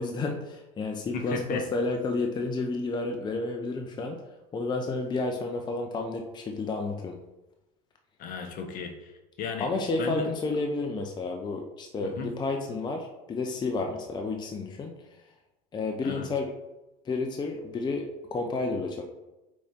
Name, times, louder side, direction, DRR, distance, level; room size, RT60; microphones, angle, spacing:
voice 1, 0.0-4.2 4.5-7.2 9.6-15.0 15.7-16.5 17.0-19.0, left 3 dB, 25° left, 3 dB, 0.7 m, -31 dB
voice 2, 1.1-1.6 8.2-9.7 10.0-10.3 12.0-12.3 16.0-16.3, left 5 dB, 50° left, 5 dB, 1.1 m, -35 dB
6.2 x 4.2 x 3.6 m, 1.0 s
supercardioid pair, 115°, 18 cm